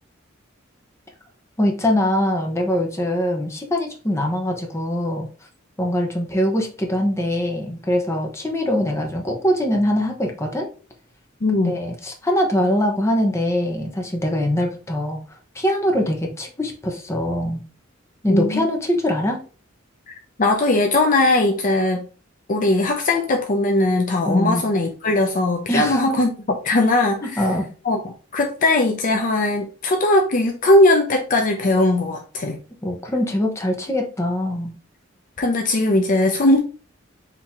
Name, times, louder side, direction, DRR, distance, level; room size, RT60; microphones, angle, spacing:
voice 1, 1.6-5.3 5.8-10.7 11.6-15.2 15.5-17.6 18.2-19.4 24.2-24.7 25.7-26.2 27.2-27.7 32.8-34.8, left 1 dB, 15° left, 0.9 m, -22 dB
voice 2, 11.4-11.8 18.3-18.6 20.1-20.2 20.4-22.1 22.5-26.3 26.6-27.5 27.8-32.6 35.4-36.6, left 2 dB, 40° left, 0.5 m, -19 dB
4.4 x 2.8 x 3.6 m
head